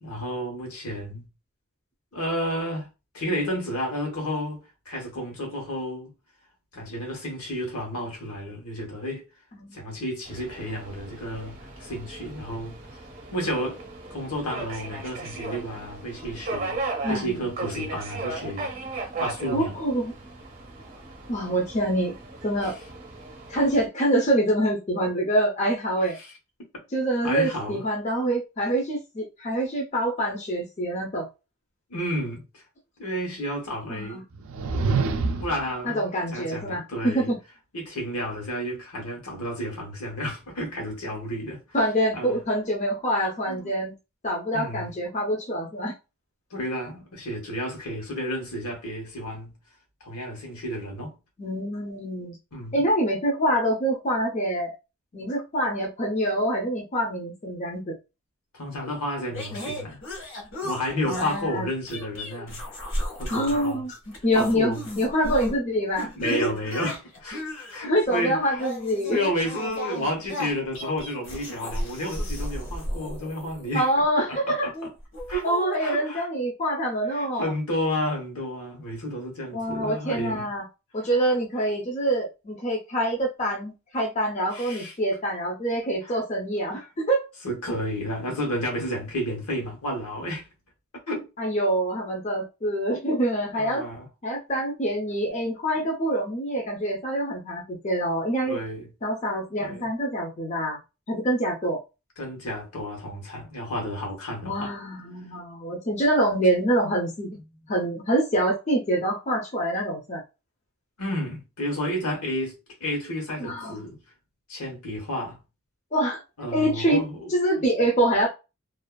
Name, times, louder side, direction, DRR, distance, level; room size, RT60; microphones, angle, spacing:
voice 1, 0.0-1.3 2.1-2.9 3.1-6.1 6.7-9.2 9.7-12.8 13.3-13.8 14.1-16.8 17.1-18.7 19.2-19.8 27.2-27.8 31.9-32.6 33.0-34.2 35.4-36.0 36.3-37.3 37.7-41.6 42.1-42.4 43.5-43.7 44.5-44.9 46.5-49.6 50.0-51.1 52.5-52.8 58.5-60.0 60.6-62.6 63.2-63.9 64.3-64.9 66.0-68.6 69.1-73.9 74.3-74.9 75.3-75.5 75.8-76.3 77.1-80.5 84.5-84.9 86.1-86.2 87.4-90.5 91.1-91.3 93.5-94.0 98.5-98.9 99.6-99.9 102.2-104.7 111.0-114.0 114.5-115.4 116.4-117.3 117.6-117.9, equal, 85° left, 1.1 m, -31 dB
voice 2, 9.5-9.8 17.0-17.5 19.5-20.1 21.3-22.1 22.4-22.8 23.5-26.2 26.9-31.3 33.9-34.2 35.8-37.4 41.7-43.9 44.2-45.9 51.4-52.4 52.7-54.8 55.1-57.9 61.1-61.7 63.3-66.5 67.8-69.2 69.9-70.0 73.7-74.7 75.4-77.5 79.5-80.6 80.9-87.3 91.4-93.8 94.2-98.6 99.0-100.8 101.1-101.8 104.4-107.4 107.7-110.2 113.4-113.8 115.9-116.2 116.5-117.0 117.3-118.3, right 1 dB, 30° left, 0.5 m, -25 dB
Subway metro underground, 10.2-23.9, right 3 dB, 40° right, 0.7 m, -37 dB
sound 1, 34.3-35.7, right 4 dB, 65° right, 0.4 m, -26 dB
sound 2, 59.3-61.4 61.9-63.8 64.0-65.6 65.9-73.9 74.7-76.1, equal, 60° left, 1.0 m, -35 dB
2.5 x 2.4 x 2.2 m
head